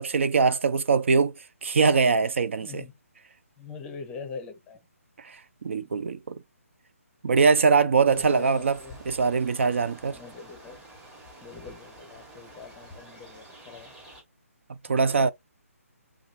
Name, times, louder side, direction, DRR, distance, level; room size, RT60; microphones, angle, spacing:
voice 1, 0.0-1.3 1.6-2.8 5.2-6.3 7.2-8.8 9.1-10.2 14.8-15.3, right 5 dB, 55° right, 0.4 m, -22 dB
voice 2, 2.6-2.9 3.6-4.8 5.9-6.0 7.9-9.0 9.9-10.8 11.4-13.9 14.9-15.3, left 5 dB, 10° left, 0.7 m, -43 dB
sound 1, 8.1-14.2, right 1 dB, 10° right, 1.1 m, -48 dB
4.9 x 2.3 x 2.6 m
figure-of-eight pair, 140°, 8 cm